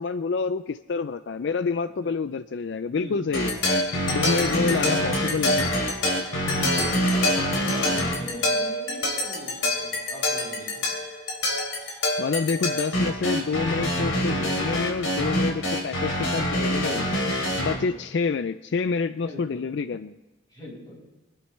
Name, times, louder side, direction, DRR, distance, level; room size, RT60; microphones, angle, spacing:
voice 1, 0.0-3.6 4.1-5.8 12.2-17.2 17.6-20.2, left 4 dB, 60° left, 11 dB, 0.4 m, -28 dB
voice 2, 2.9-3.4 6.5-10.9 16.8-17.2 17.7-18.0 19.2-19.6 20.5-21.0, left 1 dB, 20° left, -4 dB, 5.3 m, -41 dB
sound 1, 3.3-17.7, left 1 dB, 90° left, 3.5 m, -25 dB
25.0 x 11.0 x 3.2 m, 1.1 s
head